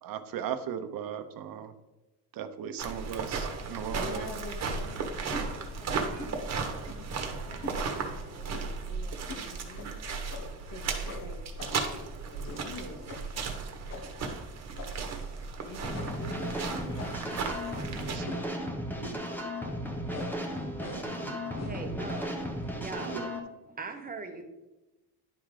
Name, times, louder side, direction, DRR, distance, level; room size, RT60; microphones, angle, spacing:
voice 1, 0.0-1.7 2.3-4.3 14.3-14.4 18.1-18.4 19.0-19.1 20.3-21.4 23.0-23.3, right 8 dB, 65° right, 9 dB, 0.8 m, -38 dB
sound 1, 2.8-18.2, right 4 dB, 45° right, 1.1 m, -35 dB
voice 2, 3.9-7.1 7.5-10.0 10.6-13.6 14.8-18.7, left 3 dB, 65° left, 2 dB, 1.8 m, -47 dB
sound 2, 5.3-5.5 6.2-6.4 6.8-7.1 7.6-7.8 8.5-8.8 9.3-9.5 9.7-9.9 10.3-10.6 11.1-11.9 12.4-12.8 13.1-13.3 13.9-14.2 14.7-15.1 15.9-16.3 17.0-17.4 18.2-18.5 19.0-19.3 20.1-20.4 20.8-21.2 21.6-21.9, left 2 dB, 45° left, 1.1 m, -43 dB
sound 3, 15.8-23.4, equal, 5° left, 0.8 m, -35 dB
voice 3, 21.5-23.2 23.7-24.4, right 3 dB, 25° right, 4 dB, 0.8 m, -40 dB
10.5 x 3.7 x 4.8 m, 1.0 s
cardioid pair, 145°, 37 cm